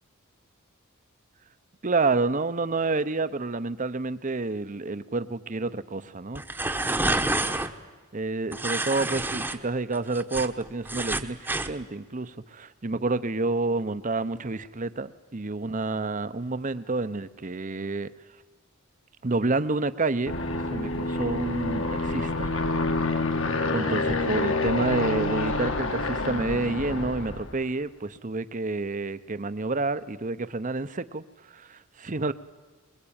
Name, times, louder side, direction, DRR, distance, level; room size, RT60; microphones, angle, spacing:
voice 1, 1.8-6.4 7.4-7.6 8.1-18.1 19.2-20.3 20.7-22.5 23.1-23.2 23.7-31.2 31.5-32.3, right 3 dB, 35° right, 14 dB, 0.8 m, -29 dB
sound 1, 6.3-7.7 8.5-9.6 9.9-11.7, right 2 dB, 10° right, 1.0 m, -28 dB
Aircraft, 20.3-27.6, left 2 dB, 60° left, 1.9 m, -28 dB
22.5 x 21.5 x 8.8 m, 1.4 s
head